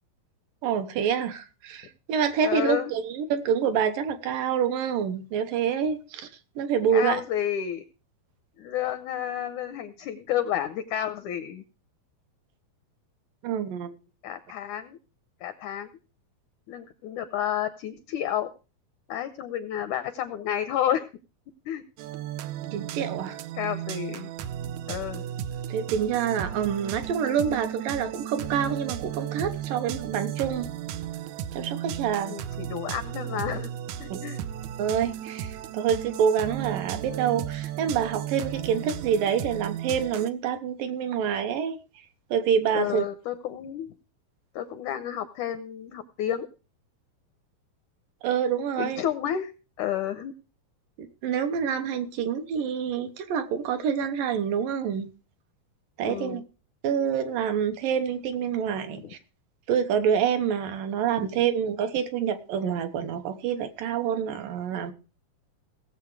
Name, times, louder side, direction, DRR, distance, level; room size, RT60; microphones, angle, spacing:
voice 1, 0.6-6.3 6.6-7.2 13.4-13.9 22.7-23.4 25.7-30.7 31.5-32.4 34.1-34.2 34.8-41.8 42.3-43.0 48.2-49.0 51.0-55.1 56.0-56.4 56.8-59.2 59.7-64.9, right 8 dB, 70° right, 2.5 m, -27 dB
voice 2, 2.4-2.9 6.9-7.8 8.6-11.6 14.2-15.0 15.4-15.9 16.7-18.5 19.1-21.1 21.7-21.8 23.6-24.3 24.9-25.2 32.3-33.7 34.0-34.4 42.7-43.9 44.5-46.5 48.8-49.5 49.8-50.3 56.0-56.4 58.9-59.1, left 10 dB, 75° left, 1.8 m, -30 dB
sound 1, 22.0-40.3, right 11 dB, 85° right, 1.6 m, -35 dB
18.0 x 7.3 x 4.7 m
omnidirectional pair, 4.3 m